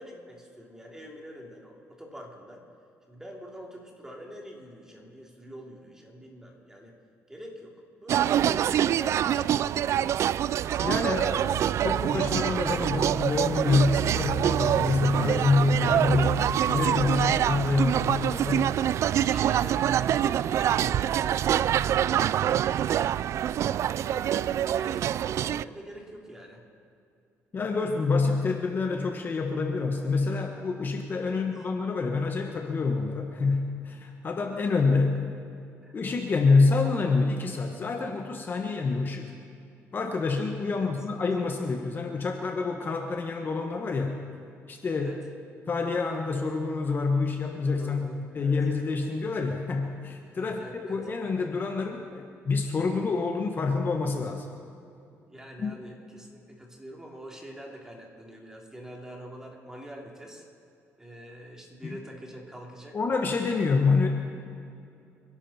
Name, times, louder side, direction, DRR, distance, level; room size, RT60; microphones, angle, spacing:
voice 1, 0.0-2.6 3.1-6.9 7.3-9.9 15.8-16.8 17.1-17.3 19.2-23.0 23.7-26.6 31.2-31.5 35.8-35.9 40.7-40.9 44.9-45.1 47.8-48.6 50.4-51.0 55.3-60.4 61.0-63.0, equal, 10° right, -1 dB, 3.4 m, -45 dB
sound 1, 8.1-25.6, right 10 dB, 60° right, 0.3 m, -25 dB
voice 2, 10.8-16.3 16.7-18.7 27.5-35.2 35.9-39.3 39.9-44.2 44.7-45.1 45.7-48.1 48.3-54.5 55.6-55.7 61.8-62.0 62.9-64.1, left 4 dB, 35° left, 3 dB, 1.5 m, -27 dB
27.5 x 11.5 x 4.4 m, 2.6 s
cardioid pair, 105°, 6 cm